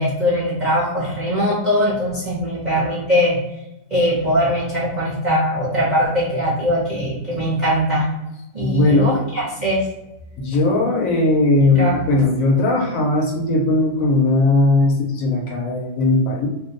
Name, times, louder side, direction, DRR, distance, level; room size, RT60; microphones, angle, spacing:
voice 1, 0.0-3.4 3.9-8.1 8.5-9.9 11.7-12.0, equal, 40° right, -6 dB, 0.7 m, -21 dB
voice 2, 8.6-9.2 10.4-16.5, left 2 dB, 65° left, 0 dB, 0.9 m, -18 dB
2.8 x 2.2 x 3.8 m, 0.93 s
omnidirectional pair, 1.8 m